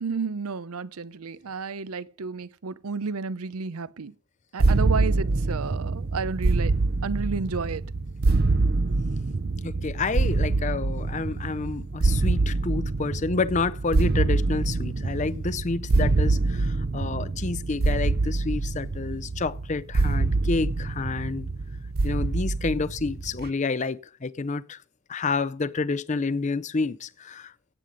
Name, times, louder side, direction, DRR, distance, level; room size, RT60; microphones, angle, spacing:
voice 1, 0.0-4.1 4.5-6.7 7.0-7.8, right 5 dB, 90° right, 0.6 m, -31 dB
sound 1, 4.6-23.5, right 3 dB, 45° right, 0.6 m, -25 dB
voice 2, 9.6-21.5 22.0-24.8 25.1-27.5, left 4 dB, 35° left, 0.5 m, -29 dB
17.0 x 7.6 x 5.2 m
head